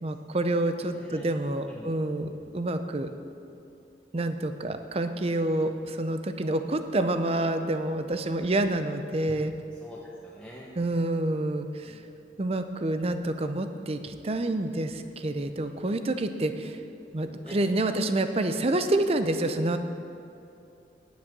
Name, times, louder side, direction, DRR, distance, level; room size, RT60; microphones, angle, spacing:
voice 1, 0.0-3.1 4.1-9.5 10.8-12.0 12.4-16.8 17.1-19.8, right 1 dB, 35° right, 8 dB, 0.6 m, -28 dB
voice 2, 1.0-1.3 1.7-1.9 9.8-10.7 11.8-12.1 17.4-17.6, equal, 5° left, -5 dB, 0.9 m, -46 dB
10.0 x 9.2 x 6.0 m, 2.7 s
head